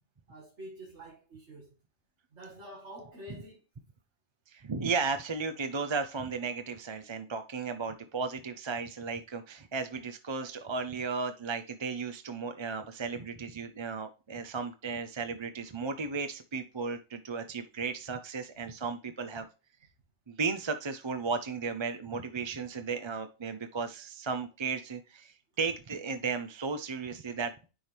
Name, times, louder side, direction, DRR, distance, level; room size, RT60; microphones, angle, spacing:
voice 1, 0.3-1.7 2.3-3.6, right 1 dB, 75° right, 2.0 m, -47 dB
voice 2, 4.5-19.5 20.3-27.7, right 4 dB, 35° right, 0.5 m, -35 dB
10.0 x 4.5 x 3.4 m
omnidirectional pair, 1.2 m